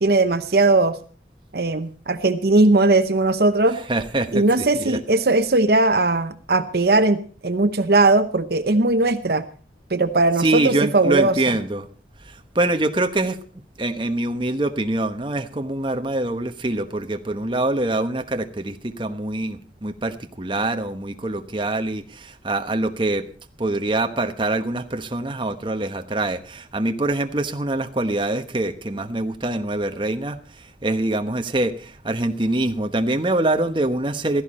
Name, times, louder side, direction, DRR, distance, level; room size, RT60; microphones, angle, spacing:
voice 1, 0.0-1.0 1.5-3.8 4.3-9.4 9.9-11.3, right 2 dB, 55° right, 0.8 m, -18 dB
voice 2, 3.9-5.0 10.4-11.9 12.2-13.4 13.8-23.3 23.6-34.4, right 2 dB, 25° right, 1.1 m, -24 dB
16.5 x 14.0 x 4.3 m
head